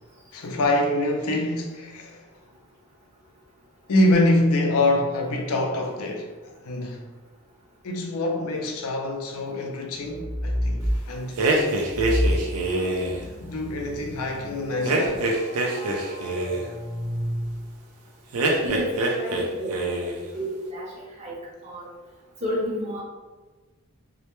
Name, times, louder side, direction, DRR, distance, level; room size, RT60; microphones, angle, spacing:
voice 1, 0.3-2.2 3.9-7.0 7.8-11.9 13.4-15.3, left 1 dB, 75° left, 0.4 m, -25 dB
sound 1, 10.1-11.0 11.9-17.9, equal, 25° left, 0.5 m, -30 dB
sound 2, 11.4-13.2 14.8-16.7 18.3-19.4 19.7-20.2, right 2 dB, 80° right, 0.4 m, -24 dB
voice 2, 18.6-21.4 21.6-21.9 22.4-23.0, equal, 30° right, 0.6 m, -31 dB
2.1 x 2.1 x 2.9 m
head